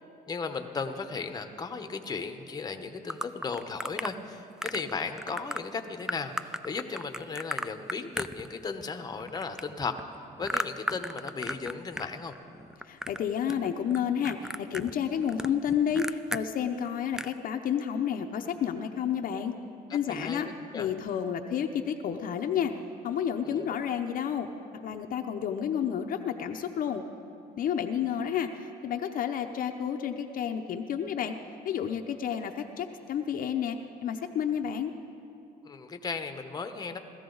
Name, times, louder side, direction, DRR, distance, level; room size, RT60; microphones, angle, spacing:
voice 1, 0.3-10.0 10.4-12.3 19.6-19.7 20.1-20.4 20.7-20.9 23.4-23.6 35.6-37.0, left 4 dB, 25° left, 7 dB, 0.9 m, -36 dB
sound 1, 3.1-4.1 4.6-4.9 5.2-5.6 6.1-8.8 9.1-12.1 12.3-13.2 13.5-14.0 14.2-16.4 16.8-16.9 17.1-17.4, right 1 dB, 5° right, 0.3 m, -35 dB
voice 2, 12.9-19.5 19.9-20.5 20.7-22.7 23.0-24.5 24.8-27.0 27.6-31.3 31.6-34.9, left 8 dB, 55° left, 5 dB, 0.7 m, -30 dB
17.5 x 13.5 x 3.9 m, 2.7 s
cardioid pair, 110°, 17 cm